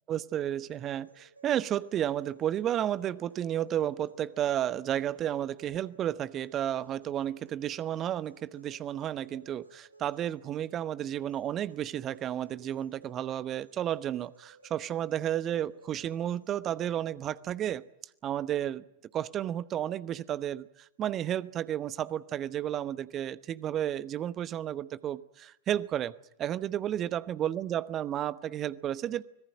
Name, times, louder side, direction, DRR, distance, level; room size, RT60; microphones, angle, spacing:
voice 1, 0.1-17.8 18.2-18.8 19.1-29.2, right 11 dB, 30° right, 19 dB, 0.9 m, -32 dB
sound 1, 0.6-16.5, right 2 dB, 80° right, 2.6 m, -59 dB
25.0 x 18.0 x 9.0 m, 0.85 s
figure-of-eight pair, 90°, 0 cm